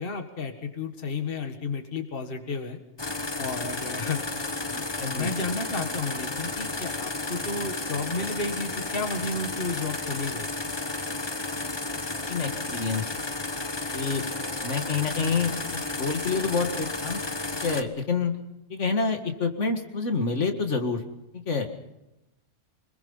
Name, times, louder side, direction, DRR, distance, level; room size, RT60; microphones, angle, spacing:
voice 1, 0.0-2.8 3.4-4.2 4.7-10.5, left 3 dB, 50° left, 6 dB, 1.9 m, -32 dB
sound 1, 3.0-17.8, left 2 dB, 20° left, 1.1 m, -32 dB
voice 2, 5.0-5.3 12.3-13.0 13.9-14.2 14.6-17.2 17.6-18.3 18.7-21.0 21.3-21.7, left 4 dB, 75° left, 6 dB, 2.2 m, -27 dB
26.0 x 21.0 x 5.6 m, 0.93 s
omnidirectional pair, 1.3 m